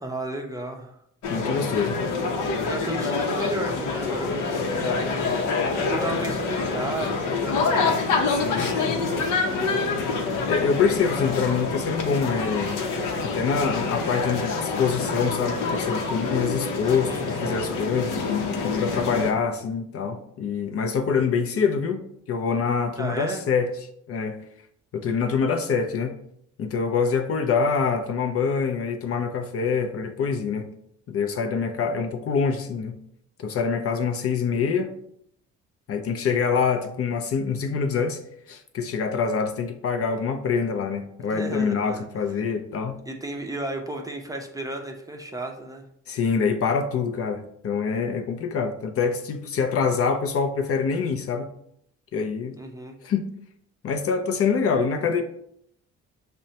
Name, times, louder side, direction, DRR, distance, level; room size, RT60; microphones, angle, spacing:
voice 1, 0.0-1.0 2.7-8.0 8.4-10.0 16.8-17.7 23.0-23.4 41.2-42.0 43.1-45.8 52.6-53.0, right 2 dB, 10° right, 0.5 m, -34 dB
sound 1, 1.2-19.3, left 4 dB, 80° left, 0.7 m, -26 dB
voice 2, 1.3-2.2 8.3-9.0 10.5-12.8 13.2-18.3 18.6-23.8 24.1-24.4 24.9-26.1 26.6-30.7 31.1-33.0 33.4-34.9 35.9-38.2 38.5-43.0 46.1-51.5 52.1-52.6 53.0-53.3 53.8-55.2, left 5 dB, 50° left, 0.5 m, -25 dB
6.1 x 2.1 x 2.7 m
cardioid pair, 90°, 30 cm